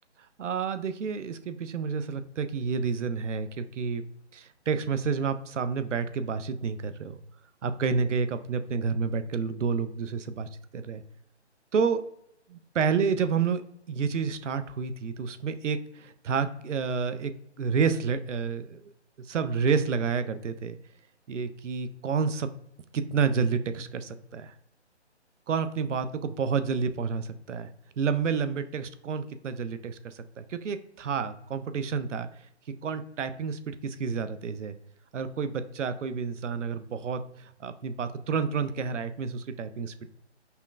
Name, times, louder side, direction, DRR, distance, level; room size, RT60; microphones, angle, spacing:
voice 1, 0.4-4.0 4.3-7.2 7.6-11.0 11.7-12.0 12.5-13.6 13.9-17.3 17.6-18.8 19.2-20.8 21.3-22.5 22.9-24.5 25.5-27.7 28.0-32.3 32.8-34.8 35.1-40.1, right 5 dB, 85° right, 11 dB, 0.5 m, -29 dB
5.5 x 2.1 x 2.3 m, 0.73 s
figure-of-eight pair, 155°, 35 cm